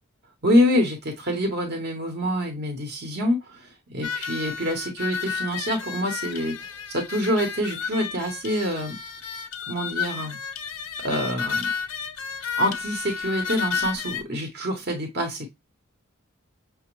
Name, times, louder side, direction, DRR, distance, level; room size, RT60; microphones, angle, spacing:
voice 1, 0.4-9.0 9.7-10.4 11.0-11.7 12.6-15.5, equal, 45° right, 4 dB, 0.8 m, -26 dB
sound 1, 4.0-14.2, left 6 dB, 80° left, 0.6 m, -32 dB
5.9 x 2.1 x 3.0 m, 0.20 s
head